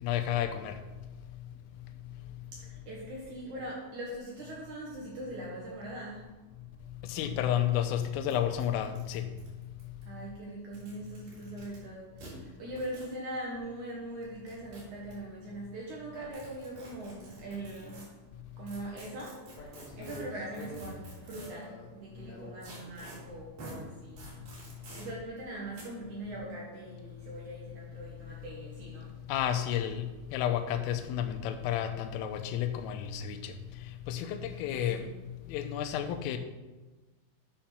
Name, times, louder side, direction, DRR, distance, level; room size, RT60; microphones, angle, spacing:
voice 1, 0.0-0.8 7.1-9.2 29.3-30.0 30.3-33.5 34.1-35.0 35.5-36.4, left 10 dB, 85° left, 8 dB, 3.3 m, -31 dB
voice 2, 2.5-6.3 7.0-7.1 10.0-18.2 18.6-29.1 34.5-34.6 34.9-35.1, right 1 dB, 90° right, -4 dB, 1.7 m, -42 dB
sound 1, 7.5-7.6 7.8-7.9 8.3-8.4 8.6-10.0 10.6-11.8 12.2-12.3 12.8-13.1 14.2-15.1 16.3-18.1 18.7-21.6 22.6-23.2 23.6-23.8 24.2-25.0 25.8-25.9, right 2 dB, 50° right, 5.3 m, -49 dB
sound 2, 16.1-17.1 19.6-22.8, left 1 dB, 65° left, 1.8 m, -48 dB
10.0 x 5.2 x 5.9 m, 1.2 s
omnidirectional pair, 5.8 m